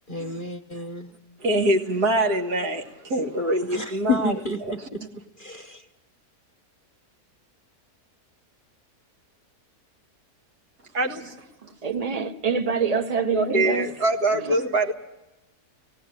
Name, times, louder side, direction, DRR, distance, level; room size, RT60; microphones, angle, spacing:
voice 1, 0.1-1.1 3.6-4.8 5.4-5.8, left 3 dB, 40° left, 0.9 m, -29 dB
voice 2, 1.4-4.3 4.6-5.1 10.9-11.4 13.3-14.9, right 1 dB, 75° right, 2.4 m, -24 dB
voice 3, 11.8-13.8 14.3-14.5, right 5 dB, 25° right, 1.1 m, -25 dB
17.5 x 17.0 x 9.1 m
omnidirectional pair, 1.7 m